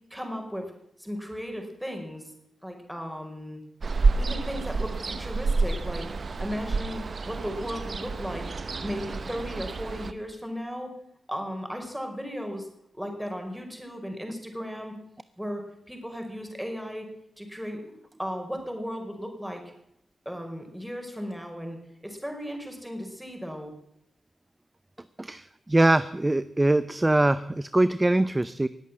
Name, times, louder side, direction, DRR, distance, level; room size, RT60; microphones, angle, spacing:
voice 1, 0.1-0.7 1.0-2.3 2.6-3.6 4.2-6.1 6.4-8.5 8.8-10.9 11.3-12.7 12.9-14.9 15.4-15.6 15.9-17.1 17.4-17.8 18.2-19.6 20.3-23.7, equal, 5° right, 3 dB, 5.1 m, -35 dB
Ocean, 3.8-10.1, right 4 dB, 55° right, 1.0 m, -29 dB
voice 2, 25.2-28.7, right 1 dB, 20° right, 14 dB, 0.6 m, -23 dB
19.0 x 8.3 x 7.5 m, 0.76 s
supercardioid pair, 40°, 0 cm